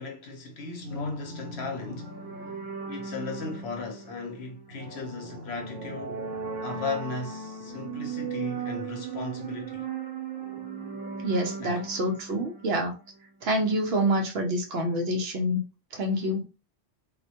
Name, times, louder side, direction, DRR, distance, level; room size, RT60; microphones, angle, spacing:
voice 1, 0.0-2.1 2.9-6.2 6.6-9.9 11.6-11.9, left 3 dB, 65° left, 0.9 m, -36 dB
sound 1, 0.8-13.3, right 4 dB, 85° right, 1.0 m, -37 dB
voice 2, 11.2-12.9 13.4-15.6 15.9-16.4, equal, 65° right, 0.8 m, -27 dB
2.4 x 2.1 x 2.7 m
omnidirectional pair, 1.2 m